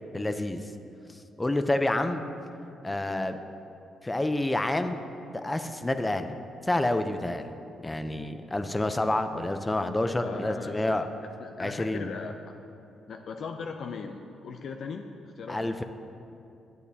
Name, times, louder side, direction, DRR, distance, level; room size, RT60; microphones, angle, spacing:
voice 1, 0.1-0.6 1.4-2.2 2.8-3.4 4.0-5.0 5.3-6.4 6.7-7.5 7.8-11.1 11.6-12.1 15.5-15.8, left 1 dB, 20° left, 8 dB, 0.6 m, -28 dB
voice 2, 10.2-11.0 11.4-12.3 13.1-15.7, left 5 dB, 65° left, 4 dB, 0.4 m, -39 dB
12.0 x 8.1 x 2.7 m, 2.8 s
supercardioid pair, 60°, 0 cm